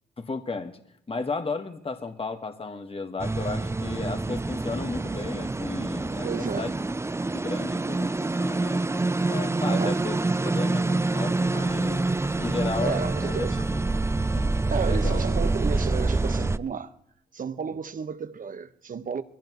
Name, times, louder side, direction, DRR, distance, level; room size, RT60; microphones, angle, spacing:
voice 1, 0.2-0.8 1.1-6.7 7.3-8.8 9.3-12.1 12.4-13.8 14.3-14.5 14.8-15.3, left 3 dB, 35° left, 1.6 m, -34 dB
sound 1, 3.2-16.6, right 2 dB, 15° right, 0.6 m, -26 dB
voice 2, 6.2-6.7 9.7-10.0 12.7-13.6 14.7-16.9 17.3-19.2, right 6 dB, 50° right, 1.3 m, -32 dB
22.5 x 17.0 x 3.1 m
supercardioid pair, 50°, 17 cm